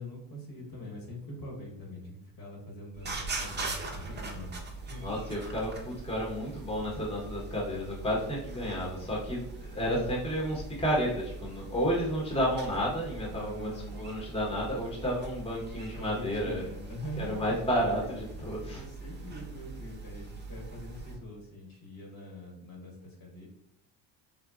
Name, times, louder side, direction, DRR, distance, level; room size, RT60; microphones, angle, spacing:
voice 1, 0.0-5.2 13.2-14.1 15.9-17.5 18.0-18.1 18.7-23.5, left 1 dB, 45° left, 0 dB, 1.3 m, -44 dB
sound 1, 2.9-21.2, right 3 dB, 20° right, 0.7 m, -42 dB
voice 2, 5.0-16.7 17.2-18.8, equal, 10° left, -3 dB, 1.0 m, -31 dB
3.9 x 2.1 x 2.3 m, 0.79 s
supercardioid pair, 80°, 50 cm